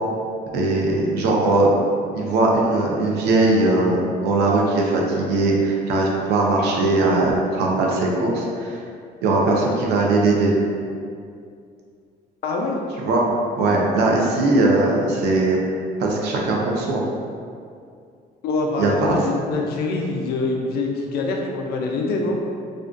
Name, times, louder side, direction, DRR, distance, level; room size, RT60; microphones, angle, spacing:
voice 1, 0.5-1.7 2.1-8.8 9.2-10.5 13.0-13.3 13.6-15.6 16.0-17.0 18.8-18.9, right 2 dB, 80° right, -1 dB, 0.5 m, -19 dB
voice 2, 12.4-12.8 18.4-22.4, left 3 dB, 65° left, 0 dB, 0.4 m, -24 dB
2.4 x 2.2 x 2.3 m, 2.4 s
cardioid pair, 110°, 17 cm